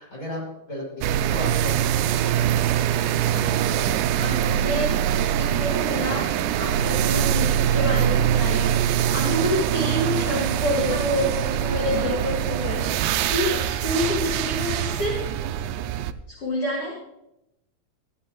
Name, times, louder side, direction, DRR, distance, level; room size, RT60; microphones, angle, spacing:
voice 1, 0.0-2.7, left 1 dB, 20° left, -5 dB, 5.7 m, -35 dB
sound 1, 1.0-16.1, right 10 dB, 85° right, 1.8 m, -23 dB
voice 2, 3.3-8.8 9.1-15.3 16.3-16.9, left 1 dB, 45° left, -3 dB, 2.6 m, -28 dB
16.5 x 10.5 x 3.0 m, 0.87 s
omnidirectional pair, 4.2 m